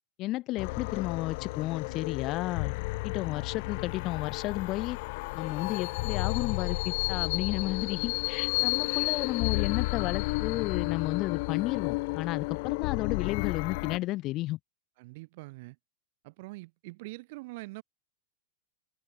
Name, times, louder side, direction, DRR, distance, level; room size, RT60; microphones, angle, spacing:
voice 1, 0.2-2.8 3.0-5.0 5.3-14.6, left 17 dB, 35° left, 1.7 m, -32 dB
sound 1, 0.6-14.0, left 26 dB, 50° left, 1.4 m, -32 dB
voice 2, 15.0-15.8 16.2-17.8, right 23 dB, 55° right, 3.1 m, -44 dB
supercardioid pair, 155°, 0 cm